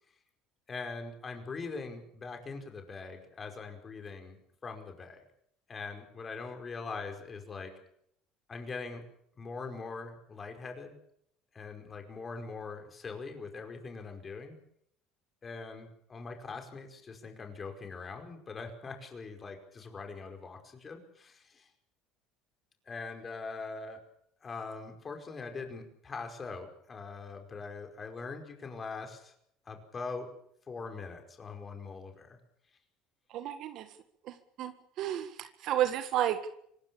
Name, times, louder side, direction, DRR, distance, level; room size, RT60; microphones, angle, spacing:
voice 1, 0.7-5.2 5.7-7.7 8.5-9.0 9.4-11.0 11.5-14.6 15.4-21.7 22.9-24.0 24.4-29.3 29.6-30.3 30.7-32.4, left 4 dB, 30° left, 4 dB, 5.0 m, -42 dB
voice 2, 33.3-33.9 34.2-36.5, right 11 dB, 60° right, 9 dB, 1.7 m, -32 dB
25.0 x 18.5 x 7.0 m, 0.70 s
supercardioid pair, 110°, 0 cm